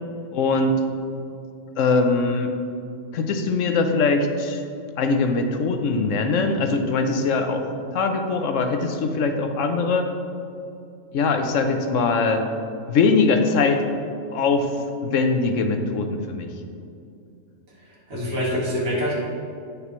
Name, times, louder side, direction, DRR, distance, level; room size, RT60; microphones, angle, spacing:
voice 1, 0.3-0.7 1.8-2.5 3.1-4.6 5.0-10.0 11.1-12.5 12.9-13.8 14.3-14.7 15.0-16.5, left 4 dB, 70° left, 6 dB, 0.9 m, -21 dB
voice 2, 17.8-19.1, equal, 85° right, -5 dB, 2.3 m, -26 dB
8.8 x 6.6 x 3.1 m, 2.5 s
omnidirectional pair, 1.4 m